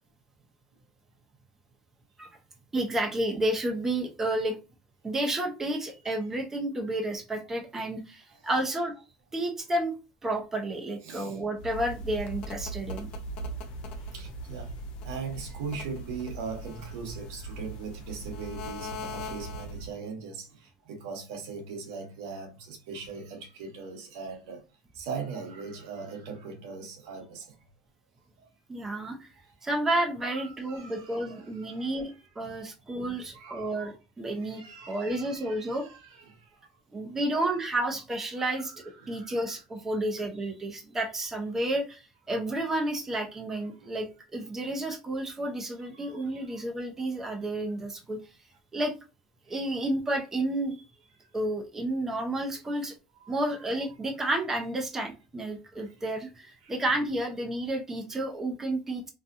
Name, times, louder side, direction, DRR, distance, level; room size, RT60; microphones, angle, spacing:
voice 1, 2.7-4.6 5.0-8.9 9.3-9.9 10.2-13.1 28.7-29.3 29.6-35.9 36.9-38.7 39.1-44.1 44.3-48.2 48.7-48.9 49.5-50.8 51.3-52.9 53.3-59.1, right 1 dB, 20° right, 0.7 m, -31 dB
voice 2, 11.0-11.4 14.1-14.7 15.0-20.5 20.9-24.6 25.0-27.5 30.3-32.0 33.3-33.9 34.4-36.4 38.4-38.7 39.0-39.6 43.8-43.9 46.0-46.1 46.5-46.6 53.2-53.3 56.6-56.7, right 5 dB, 75° right, 0.9 m, -40 dB
sound 1, 11.6-19.9, right 1 dB, 50° left, 0.7 m, -39 dB
2.6 x 2.3 x 2.5 m
supercardioid pair, 95°, 2 cm